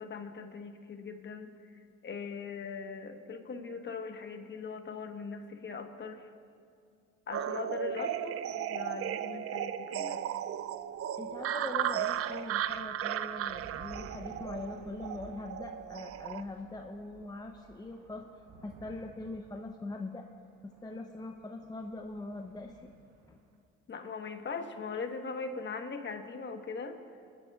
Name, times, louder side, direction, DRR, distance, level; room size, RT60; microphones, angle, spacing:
voice 1, 0.0-1.5 2.0-6.3 7.3-10.2 23.9-27.0, left 5 dB, 35° left, 6 dB, 1.3 m, -40 dB
sound 1, 7.3-16.4, right 10 dB, 50° right, 0.5 m, -35 dB
voice 2, 7.9-8.3 11.1-18.3 18.6-20.2 20.6-22.9 23.2-23.4, left 2 dB, 15° left, 3 dB, 0.7 m, -42 dB
sound 2, 9.9-23.5, right 3 dB, 70° right, 1.5 m, -56 dB
24.0 x 11.0 x 2.4 m, 2.4 s
supercardioid pair, 75°, 30 cm